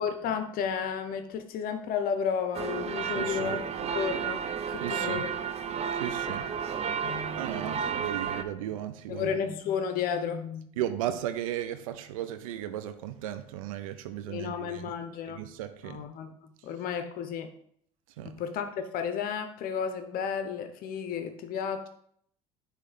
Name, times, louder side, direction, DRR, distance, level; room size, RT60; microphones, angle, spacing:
voice 1, 0.0-4.4 4.7-5.3 6.3-6.5 7.0-7.8 9.1-10.7 14.3-15.4 15.8-17.5 18.2-21.9, left 7 dB, 60° left, 8 dB, 0.7 m, -33 dB
sound 1, 2.5-8.4, right 7 dB, 40° right, 0.6 m, -32 dB
voice 2, 3.1-3.6 4.8-5.2 5.9-6.4 7.1-9.3 10.8-14.9 15.3-16.0 18.2-18.4, right 12 dB, 90° right, 10 dB, 0.5 m, -36 dB
6.5 x 3.2 x 5.7 m, 0.68 s
supercardioid pair, 85°, 17 cm